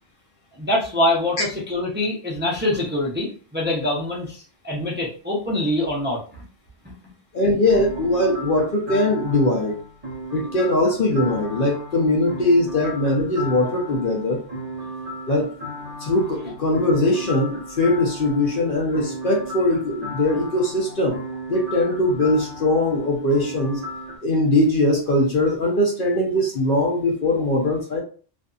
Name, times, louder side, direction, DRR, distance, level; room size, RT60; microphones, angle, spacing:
voice 1, 0.6-6.4, left 1 dB, 10° right, -4 dB, 0.6 m, -24 dB
voice 2, 7.3-9.7 10.3-14.4 15.3-15.5 16.0-21.2 21.5-23.8 24.2-28.0, left 1 dB, 55° left, 0 dB, 0.8 m, -21 dB
sound 1, 7.7-24.2, equal, 35° right, 0.9 m, -35 dB
2.5 x 2.5 x 2.3 m, 0.39 s
omnidirectional pair, 1.1 m